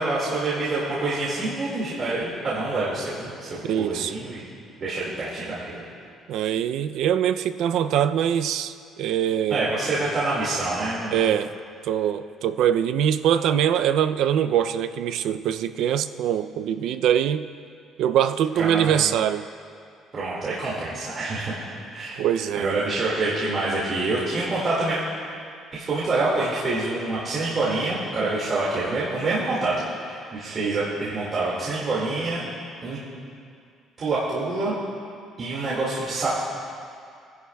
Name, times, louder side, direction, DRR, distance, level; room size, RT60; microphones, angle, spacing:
voice 1, 0.0-4.4 4.8-5.8 9.5-11.2 18.6-18.9 20.1-21.5 21.9-22.2 22.6-25.0 25.7-29.7 30.0-32.4 32.8-33.0 34.0-34.7 35.4-36.3, right 2 dB, 30° right, -8 dB, 2.0 m, -26 dB
voice 2, 3.6-4.1 6.3-9.6 11.1-11.5 11.8-17.5 18.0-19.5 22.2-22.8, right 9 dB, 60° right, 10 dB, 0.4 m, -23 dB
25.0 x 11.0 x 2.3 m, 2.3 s
cardioid pair, 180°, 0 cm